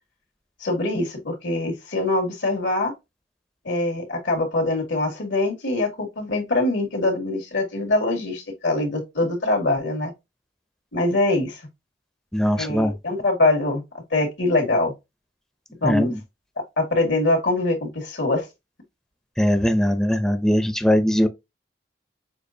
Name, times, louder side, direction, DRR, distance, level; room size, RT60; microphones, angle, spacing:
voice 1, 0.6-2.9 3.7-10.1 10.9-11.6 12.6-13.8 14.1-14.9 15.8-16.1 16.8-18.4, left 2 dB, 85° left, 2.0 m, -23 dB
voice 2, 12.3-12.9 15.8-16.2 19.4-21.3, equal, 5° left, 0.5 m, -20 dB
6.6 x 2.5 x 2.7 m
head